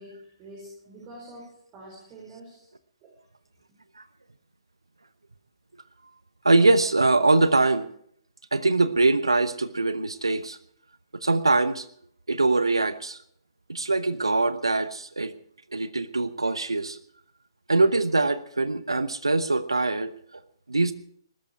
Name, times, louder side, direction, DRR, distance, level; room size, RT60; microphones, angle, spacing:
voice 1, 0.0-2.7, right 1 dB, 25° right, -1 dB, 5.5 m, -46 dB
voice 2, 6.4-7.9 8.5-10.6 11.1-11.9 12.3-13.2 13.7-15.3 15.7-17.0 17.7-20.1 20.7-20.9, right 3 dB, 85° right, 14 dB, 0.9 m, -23 dB
20.0 x 13.0 x 4.8 m, 0.65 s
figure-of-eight pair, 130°, 3 cm